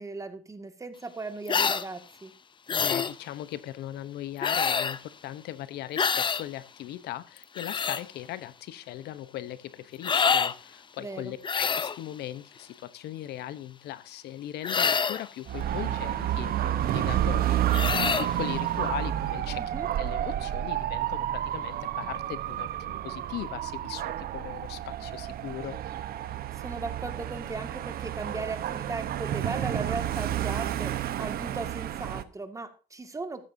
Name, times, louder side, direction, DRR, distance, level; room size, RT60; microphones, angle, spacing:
voice 1, 0.0-2.3 11.0-11.4 19.6-19.9 26.6-33.4, right 3 dB, 20° right, 7 dB, 2.0 m, -37 dB
sound 1, 1.5-1.9 2.7-3.1 4.4-5.0 6.0-6.4 7.4-8.0 10.0-10.5 11.4-12.0 14.6-15.3 17.7-18.3, left 6 dB, 30° left, 0.7 m, -26 dB
voice 2, 2.7-19.6 20.0-25.8, left 13 dB, 75° left, 14 dB, 1.0 m, -39 dB
Dog / Motorcycle, 15.5-32.2, right 12 dB, 60° right, 1.1 m, -30 dB
14.0 x 13.0 x 2.8 m, 0.34 s
cardioid pair, 110°, 17 cm